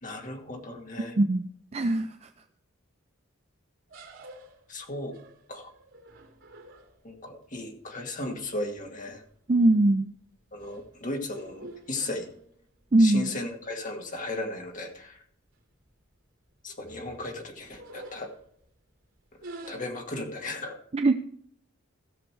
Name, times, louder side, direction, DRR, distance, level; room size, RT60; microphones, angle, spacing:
voice 1, 0.0-1.2 4.7-5.1 5.5-5.7 7.0-9.2 10.5-12.3 13.0-15.2 16.6-18.3 19.7-20.8, left 2 dB, 40° left, 2 dB, 2.1 m, -36 dB
voice 2, 1.7-2.3 9.5-10.1 12.9-13.3 20.9-21.1, right 2 dB, 35° right, 8 dB, 0.5 m, -21 dB
sound 1, 3.9-7.2 8.9-9.1 9.6-9.9 10.3-12.9 13.3-13.4 13.7-13.8 14.6-14.7 15.0-15.2 15.5-15.9 16.5-18.7 19.3-19.8, right 2 dB, 85° right, 2.6 m, -48 dB
16.0 x 6.7 x 4.6 m, 0.64 s
head